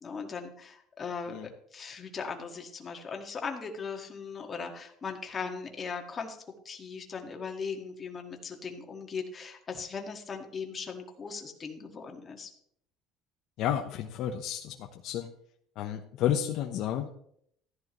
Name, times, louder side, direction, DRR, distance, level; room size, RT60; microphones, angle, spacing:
voice 1, 0.0-1.3 1.7-6.4 6.7-12.5, left 5 dB, 30° left, 4 dB, 1.9 m, -38 dB
voice 2, 13.6-15.3 15.8-17.1, left 10 dB, 60° left, 4 dB, 0.9 m, -31 dB
14.5 x 11.0 x 3.1 m, 0.69 s
cardioid pair, 125°, 0 cm